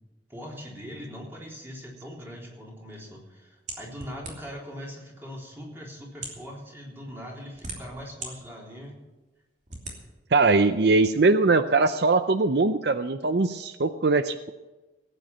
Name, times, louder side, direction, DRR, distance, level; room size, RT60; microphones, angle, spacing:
voice 1, 0.3-9.0, equal, 15° right, -3 dB, 3.8 m, -41 dB
sound 1, 3.7-4.7 5.4-5.5 6.1-6.5 7.2-8.3 8.8-8.9 9.7-10.0, right 3 dB, 45° right, 3.0 m, -38 dB
voice 2, 10.3-14.5, right 3 dB, 65° right, 10 dB, 0.6 m, -21 dB
18.0 x 9.1 x 6.0 m, 1.1 s
head